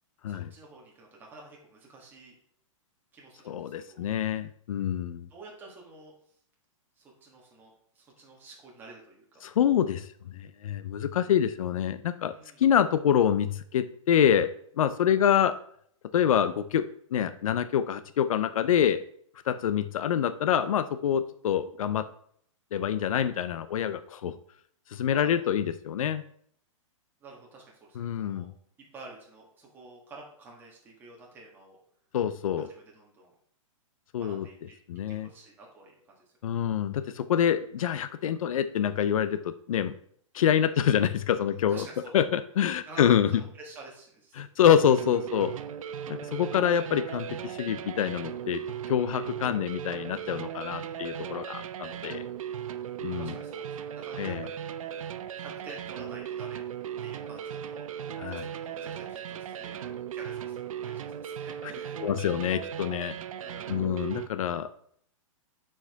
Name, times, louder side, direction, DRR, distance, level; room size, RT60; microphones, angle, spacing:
voice 1, 0.3-2.3 3.1-4.0 5.3-6.1 7.0-9.4 12.3-12.6 25.1-25.6 27.2-28.5 28.9-31.8 32.5-33.3 34.2-34.8 35.1-36.5 41.4-42.1 42.8-44.4 45.4-45.5 50.7-51.2 53.2-54.5 54.8-54.9 55.4-56.6 57.0-57.9 58.3-62.3 63.4-63.8, right 3 dB, 10° right, -2 dB, 1.3 m, -49 dB
voice 2, 3.5-5.3 9.4-15.5 16.1-19.0 19.5-22.0 22.7-24.3 24.9-26.2 28.0-28.5 32.1-32.7 34.1-34.5 34.9-35.3 36.4-39.9 40.3-41.9 42.1-43.3 44.4-45.5 46.1-52.3 53.0-53.3 54.2-54.4 58.2-58.4 62.0-63.2 63.7-64.7, left 9 dB, 85° left, 12 dB, 0.5 m, -26 dB
sound 1, 44.8-64.3, right 9 dB, 85° right, 0.5 m, -37 dB
7.1 x 4.7 x 3.4 m, 0.64 s
hypercardioid pair, 165°, 17 cm